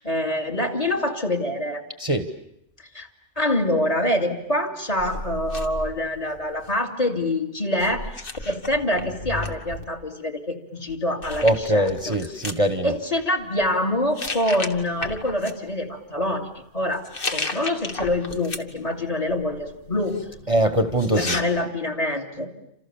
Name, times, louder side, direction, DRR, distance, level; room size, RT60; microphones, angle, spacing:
voice 1, 0.0-1.8 2.9-3.1 3.4-8.1 8.5-11.4 11.7-12.1 12.8-17.0 17.3-20.2 21.2-22.5, left 1 dB, 30° left, 6 dB, 2.5 m, -25 dB
sound 1, 5.0-6.8 7.8-9.8 10.9-11.0 11.2-12.6 13.4-13.7 14.1-15.5 16.9-18.9 19.3-21.4, left 2 dB, 50° left, 1.7 m, -34 dB
voice 2, 11.4-12.9 20.5-21.4, right 1 dB, 30° right, 9 dB, 1.1 m, -22 dB
29.0 x 27.0 x 7.0 m, 0.80 s
omnidirectional pair, 1.2 m